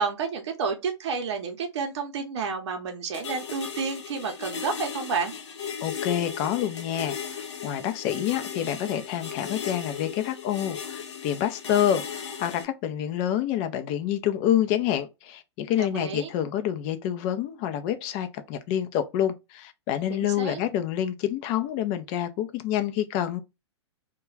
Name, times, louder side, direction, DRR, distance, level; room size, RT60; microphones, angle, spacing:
voice 1, 0.0-5.3 15.8-16.3 20.1-20.6, right 5 dB, 65° right, 0.7 m, -30 dB
sound 1, 3.1-12.6, left 7 dB, 75° left, 0.8 m, -36 dB
voice 2, 5.8-23.4, left 10 dB, 40° left, 0.4 m, -27 dB
2.3 x 2.2 x 3.1 m
hypercardioid pair, 120°, 15 cm